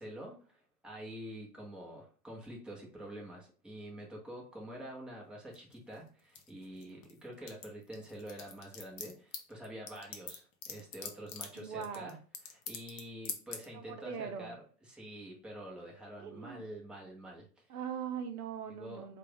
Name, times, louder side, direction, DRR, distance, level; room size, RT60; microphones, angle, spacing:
voice 1, 0.0-12.2 12.5-14.6 14.8-17.6 18.8-19.0, equal, ahead, -2 dB, 0.9 m, -47 dB
sound 1, 5.5-7.1 7.4-13.0 13.2-13.6, left 7 dB, 30° left, 0.6 m, -43 dB
voice 2, 11.5-12.2 13.7-14.6 16.2-16.6 17.7-19.2, right 7 dB, 65° right, 7 dB, 0.7 m, -41 dB
3.3 x 2.4 x 3.4 m, 0.41 s
hypercardioid pair, 115°, 49 cm